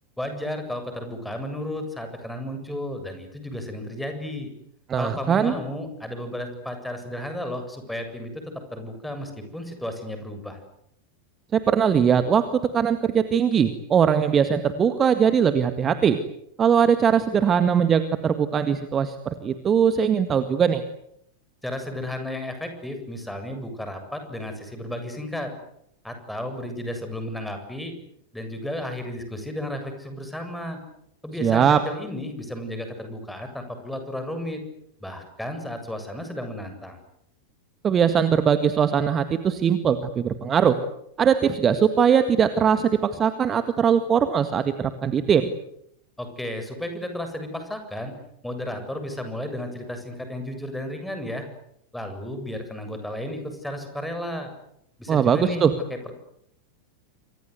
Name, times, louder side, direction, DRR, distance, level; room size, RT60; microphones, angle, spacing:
voice 1, 0.2-4.5 5.0-8.4 8.7-10.6 21.6-25.5 26.0-27.9 28.3-30.8 31.2-34.6 35.0-37.0 46.2-48.1 48.4-51.5 51.9-54.5 55.0-56.1, left 1 dB, 5° left, 6 dB, 7.6 m, -33 dB
voice 2, 4.9-5.6 11.5-12.5 12.7-16.2 16.6-20.8 31.4-31.8 37.8-40.8 41.2-45.5 55.1-55.7, right 7 dB, 25° right, 10 dB, 1.9 m, -20 dB
28.5 x 25.5 x 8.2 m, 0.75 s
figure-of-eight pair, 90°, 0 cm